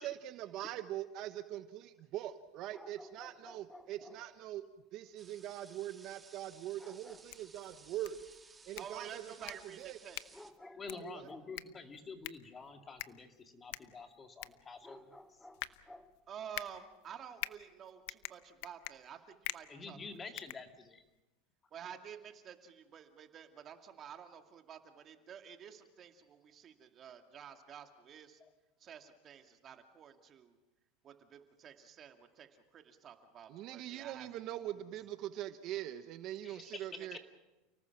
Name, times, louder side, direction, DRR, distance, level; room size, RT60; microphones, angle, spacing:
voice 1, 0.0-8.2 8.6-10.0 11.0-11.3 33.5-37.2, right 13 dB, 50° right, 10 dB, 1.2 m, -43 dB
sound 1, 2.7-4.3 6.8-7.6 10.3-11.8 14.8-16.2, left 1 dB, 5° left, 1.1 m, -55 dB
sound 2, 5.2-10.5, right 4 dB, 15° right, 1.9 m, -59 dB
sound 3, 7.1-21.2, left 18 dB, 70° left, 0.8 m, -48 dB
voice 2, 8.8-10.4 16.3-20.0 21.7-28.4 28.8-30.6 31.0-34.3 36.9-37.2, right 8 dB, 35° right, 5 dB, 2.3 m, -51 dB
voice 3, 10.6-15.4 19.7-21.0 28.4-28.5 36.4-37.2, left 4 dB, 20° left, 5 dB, 2.3 m, -49 dB
30.0 x 19.0 x 6.0 m, 1.0 s
supercardioid pair, 125°, 0 cm